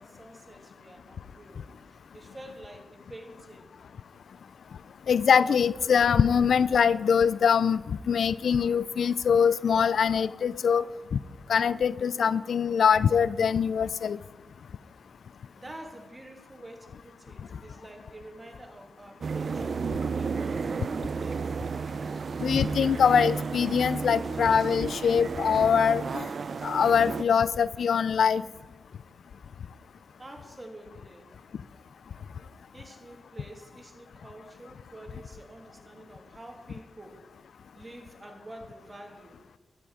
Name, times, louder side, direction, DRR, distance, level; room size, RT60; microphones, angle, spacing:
voice 1, 0.0-3.7 15.6-19.7 20.1-21.6 30.2-31.3 32.7-37.3 37.7-39.4, right 1 dB, 25° right, 2 dB, 2.8 m, -48 dB
voice 2, 5.1-10.8 11.1-11.2 11.5-14.2 22.4-26.3 26.6-28.4, left 7 dB, 80° left, 18 dB, 0.4 m, -23 dB
sound 1, 19.2-27.2, right 5 dB, 65° right, 0.5 m, -32 dB
13.0 x 10.5 x 4.9 m, 1.2 s
cardioid pair, 55°, 0 cm